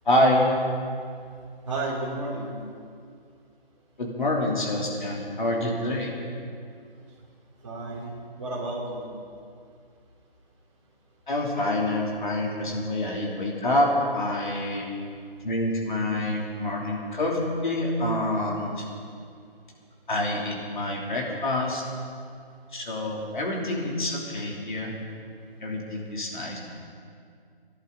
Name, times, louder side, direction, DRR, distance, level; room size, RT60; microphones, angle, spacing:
voice 1, 0.0-0.6 4.0-6.1 11.3-14.9 15.4-18.8 20.1-21.8 22.7-24.9 25.6-26.6, left 1 dB, 55° left, -2 dB, 3.3 m, -26 dB
voice 2, 1.7-2.5 7.6-9.0, right 2 dB, 30° right, -3 dB, 2.9 m, -32 dB
26.5 x 11.5 x 4.0 m, 2.3 s
figure-of-eight pair, 175°, 30 cm